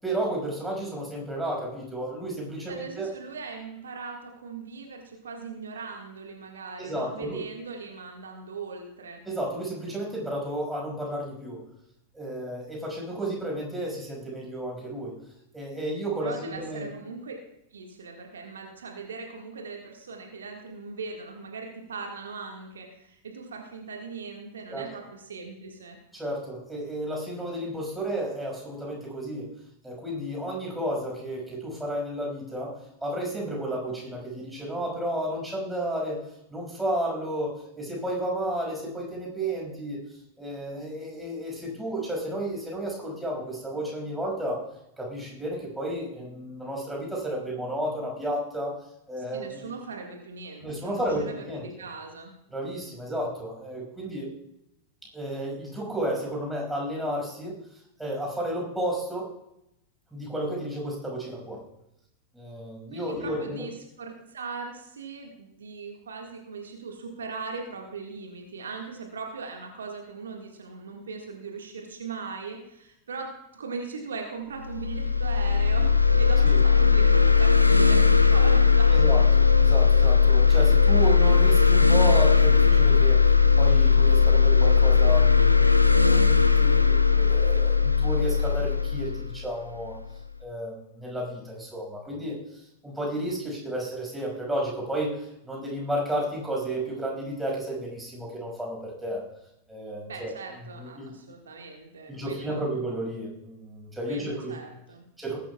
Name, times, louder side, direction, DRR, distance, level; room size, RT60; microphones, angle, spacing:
voice 1, 0.0-3.1 6.8-7.4 9.2-11.6 12.1-15.1 15.5-16.9 24.7-24.8 26.1-29.5 29.8-32.8 33.0-36.2 36.5-44.6 45.0-48.8 49.1-49.6 50.6-51.6 52.5-54.3 55.1-57.6 58.0-59.3 60.1-61.6 62.3-63.7 76.4-76.6 78.9-85.7 86.0-90.0 90.4-99.2 99.7-100.3 100.7-101.1 102.1-104.6 105.2-105.4, right 1 dB, 5° right, -2 dB, 5.8 m, -32 dB
voice 2, 2.7-9.2 16.2-17.3 17.7-26.0 49.2-52.3 62.9-79.0 100.1-102.8 104.1-105.0, right 4 dB, 70° right, 2 dB, 1.8 m, -39 dB
sound 1, 74.6-90.1, left 5 dB, 90° left, 0.7 m, -19 dB
20.0 x 12.0 x 2.4 m, 0.83 s
figure-of-eight pair, 90°, 0 cm